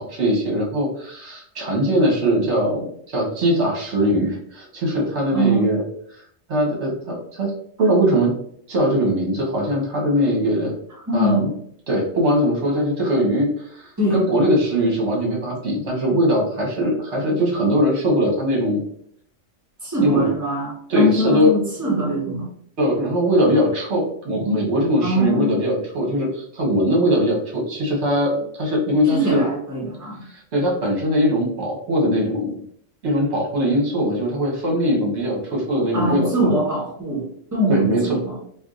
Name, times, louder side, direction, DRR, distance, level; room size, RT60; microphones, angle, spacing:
voice 1, 0.0-5.8 6.1-6.2 6.5-7.5 7.8-8.3 8.7-10.7 11.1-11.5 11.9-18.8 20.0-20.3 20.9-21.5 22.8-29.4 30.3-32.6 33.0-36.6 37.7-38.2, equal, 60° right, -2 dB, 1.2 m, -21 dB
voice 2, 5.3-5.7 11.1-11.5 14.0-14.2 19.8-22.5 25.0-25.6 29.1-30.2 35.9-37.3 37.5-38.4, right 1 dB, 15° right, -5 dB, 1.1 m, -22 dB
4.5 x 2.5 x 2.4 m, 0.67 s
omnidirectional pair, 1.3 m